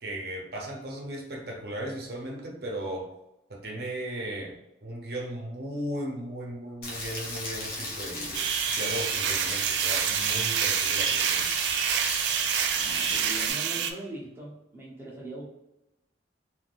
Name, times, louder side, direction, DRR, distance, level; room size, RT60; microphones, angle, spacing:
voice 1, 0.0-3.1 3.5-4.5 4.8-11.5, right 1 dB, 60° right, 0 dB, 0.7 m, -36 dB
Rain, 6.8-13.5, left 1 dB, 55° left, 0.9 m, -35 dB
sound 1, 8.3-13.9, right 8 dB, 75° right, 0.3 m, -27 dB
voice 2, 12.7-15.5, right 2 dB, 10° right, -5 dB, 0.8 m, -41 dB
3.5 x 2.5 x 2.4 m, 0.90 s
head